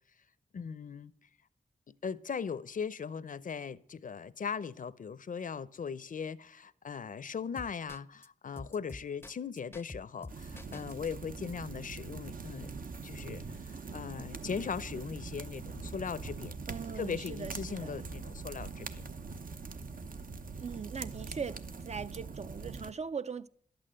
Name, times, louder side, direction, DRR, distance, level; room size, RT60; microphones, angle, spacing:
voice 1, 0.5-1.1 1.9-12.7 13.0-16.6 16.9-19.0, left 6 dB, 65° left, 0.6 m, -39 dB
sound 1, 7.6-8.3 8.6-11.1, left 2 dB, 15° left, 0.5 m, -46 dB
sound 2, 10.3-22.9, right 4 dB, 70° right, 0.9 m, -43 dB
voice 2, 16.7-17.9 20.6-23.5, right 6 dB, 50° right, 0.5 m, -40 dB
11.5 x 8.7 x 7.6 m
wide cardioid pair, 90°, 15 cm